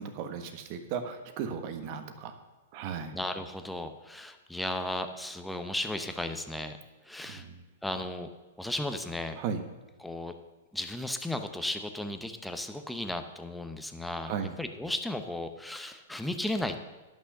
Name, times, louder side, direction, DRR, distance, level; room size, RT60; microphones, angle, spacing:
voice 1, 0.0-2.3 2.7-3.1 7.3-7.6 9.4-9.6 14.2-14.6, right 7 dB, 45° right, 8 dB, 1.3 m, -36 dB
voice 2, 3.1-6.8 7.0-7.5 7.8-8.3 8.6-9.4 10.0-10.3 10.7-14.3 14.6-16.8, left 1 dB, 5° left, 7 dB, 0.8 m, -35 dB
11.0 x 6.3 x 6.7 m, 1.2 s
hypercardioid pair, 135°, 0 cm